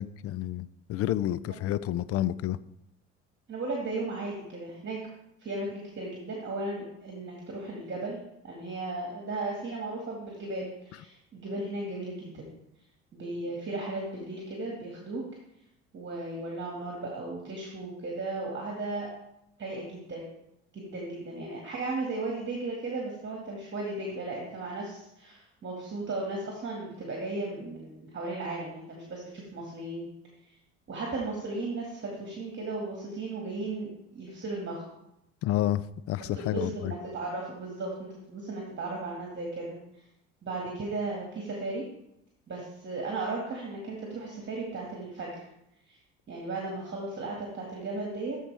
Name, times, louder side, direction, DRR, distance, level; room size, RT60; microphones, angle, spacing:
voice 1, 0.0-2.6 35.4-36.9, left 13 dB, 45° left, 18 dB, 0.4 m, -30 dB
voice 2, 3.5-5.0 5.4-8.2 8.4-12.4 13.1-15.2 15.9-19.1 19.6-20.2 20.7-30.1 30.4-30.6 30.9-34.9 36.3-39.8 40.4-41.8 42.5-45.3 45.9-46.0 46.3-48.4, right 2 dB, 35° right, -1 dB, 2.0 m, -35 dB
13.0 x 4.6 x 3.4 m, 0.83 s
hypercardioid pair, 65°, 34 cm